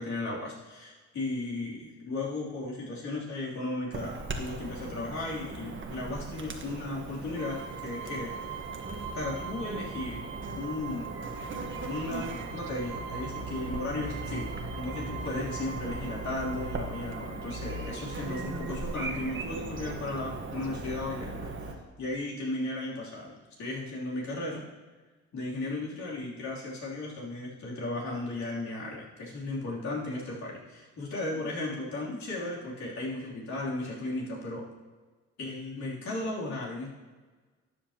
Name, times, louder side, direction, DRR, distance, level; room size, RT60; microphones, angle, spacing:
voice 1, 0.0-8.6 9.1-10.3 10.5-11.1 11.8-24.6 25.3-34.6 35.4-36.9, left 2 dB, 65° left, -5 dB, 3.1 m, -35 dB
Chirp tweet / Buzz, 3.9-21.7, right 3 dB, 40° right, 1.3 m, -38 dB
sound 1, 7.4-19.8, right 6 dB, 65° right, 1.1 m, -43 dB
13.0 x 8.6 x 2.9 m, 1.4 s
cardioid pair, 90°, 30 cm